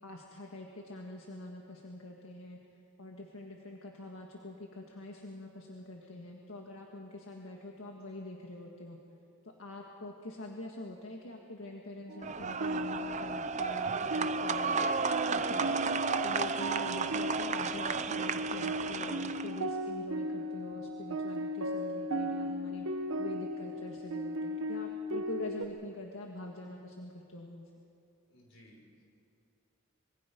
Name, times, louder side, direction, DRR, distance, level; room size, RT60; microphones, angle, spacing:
voice 1, 0.0-9.0 9.4-14.9 15.2-27.7, left 2 dB, 80° left, 1 dB, 1.7 m, -45 dB
sound 1, 12.1-25.7, equal, 80° right, 1.2 m, -37 dB
sound 2, 12.2-19.6, right 5 dB, 35° right, 0.6 m, -33 dB
voice 2, 28.3-29.0, equal, 60° left, -1 dB, 5.4 m, -59 dB
25.5 x 23.0 x 5.3 m, 2.6 s
head